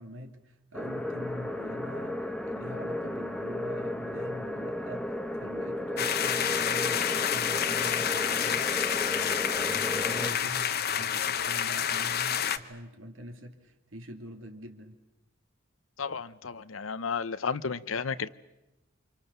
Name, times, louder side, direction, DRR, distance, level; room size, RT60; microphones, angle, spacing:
voice 1, 0.0-5.1 5.4-15.0, equal, 75° right, 5 dB, 2.6 m, -44 dB
sound 1, 0.7-10.3, left 1 dB, 5° left, 1.0 m, -34 dB
sound 2, 6.0-12.6, left 9 dB, 50° left, 1.0 m, -28 dB
voice 2, 16.0-18.3, left 5 dB, 85° left, 14 dB, 0.8 m, -33 dB
28.5 x 26.0 x 6.8 m, 1.0 s
head